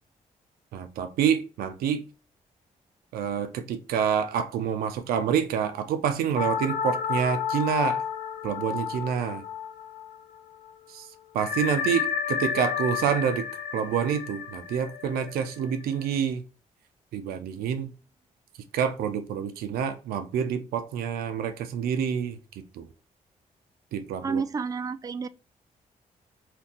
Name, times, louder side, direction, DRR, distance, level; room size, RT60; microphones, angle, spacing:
voice 1, 0.7-2.0 3.1-8.0 8.4-9.4 10.9-11.0 11.3-13.5 13.7-16.4 17.1-17.9 18.7-22.9 23.9-24.4, right 8 dB, 85° right, 0.4 m, -27 dB
sound 1, 6.4-10.4 10.7-10.8 11.4-16.0, left 7 dB, 75° left, 0.4 m, -31 dB
voice 2, 24.2-25.3, right 5 dB, 25° right, 0.3 m, -30 dB
2.5 x 2.2 x 3.6 m
supercardioid pair, 55°, 15 cm